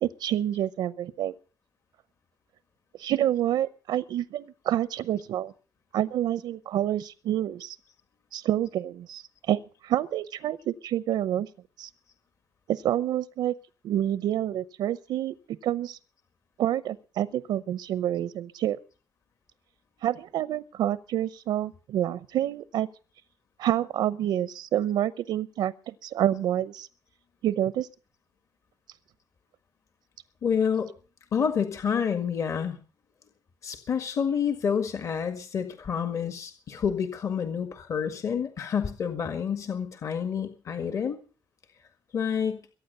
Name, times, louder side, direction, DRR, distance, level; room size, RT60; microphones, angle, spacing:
voice 1, 0.0-1.3 2.9-5.5 5.9-7.8 8.3-11.5 11.8-11.9 12.7-13.5 13.8-16.0 16.6-18.8 20.0-22.9 23.6-26.9 27.4-27.9, right 11 dB, 85° right, 15 dB, 0.7 m, -28 dB
voice 2, 30.4-30.9 31.3-32.8 33.6-41.2 42.1-42.6, left 7 dB, 45° left, 7 dB, 1.7 m, -28 dB
22.5 x 9.5 x 6.7 m, 0.39 s
cardioid pair, 165°, 7 cm